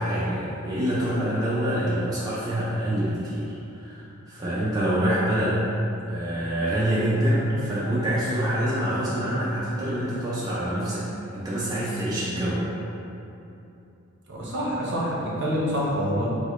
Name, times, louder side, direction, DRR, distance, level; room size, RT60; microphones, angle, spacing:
voice 1, 0.0-5.8 6.1-11.1 11.3-12.6, right 1 dB, 20° right, -9 dB, 0.4 m, -26 dB
voice 2, 14.3-16.3, equal, 55° right, -5 dB, 0.7 m, -26 dB
4.6 x 2.0 x 2.4 m, 2.8 s
head